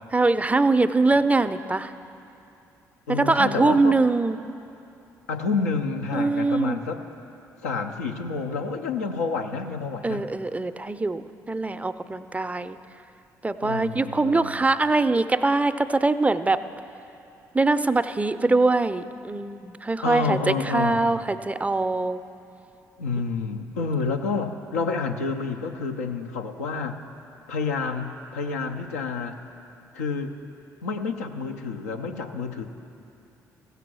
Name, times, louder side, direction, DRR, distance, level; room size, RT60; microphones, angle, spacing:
voice 1, 0.1-1.9 3.1-4.4 6.1-6.8 10.0-12.8 13.4-16.6 17.5-22.2, right 3 dB, 15° right, 11 dB, 0.4 m, -23 dB
voice 2, 3.1-4.0 5.3-7.0 7.6-10.2 13.6-14.7 20.0-21.2 23.0-27.0 27.5-29.4 29.9-30.4 30.8-32.7, left 4 dB, 90° left, 4 dB, 0.6 m, -29 dB
15.5 x 6.9 x 6.2 m, 2.8 s
hypercardioid pair, 50°, 8 cm